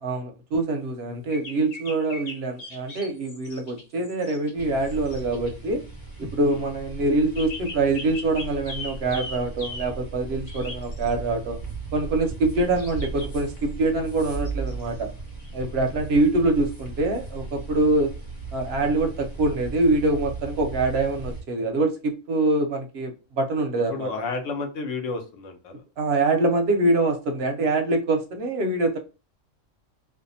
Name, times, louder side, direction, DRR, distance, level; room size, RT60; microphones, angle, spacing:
voice 1, 0.0-5.8 6.2-11.6 11.9-15.1 15.5-18.1 18.5-24.1 26.0-29.0, right 2 dB, 65° right, 0.7 m, -24 dB
sound 1, 1.3-5.5 7.3-9.9 10.5-11.1 12.8-13.6 14.4-14.8 15.3-15.5, left 2 dB, 50° left, 1.1 m, -39 dB
sound 2, 4.6-21.4, right 3 dB, 20° left, 0.9 m, -36 dB
voice 2, 23.9-25.8, left 4 dB, 75° left, 1.0 m, -31 dB
2.6 x 2.2 x 2.6 m
omnidirectional pair, 1.3 m